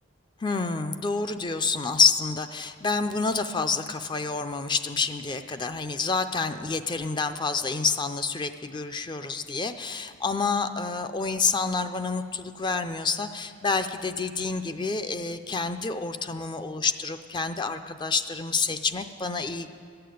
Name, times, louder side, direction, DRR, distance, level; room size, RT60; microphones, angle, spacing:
voice 1, 0.4-19.7, left 4 dB, 25° left, 9 dB, 0.4 m, -28 dB
13.5 x 6.7 x 9.2 m, 2.3 s
head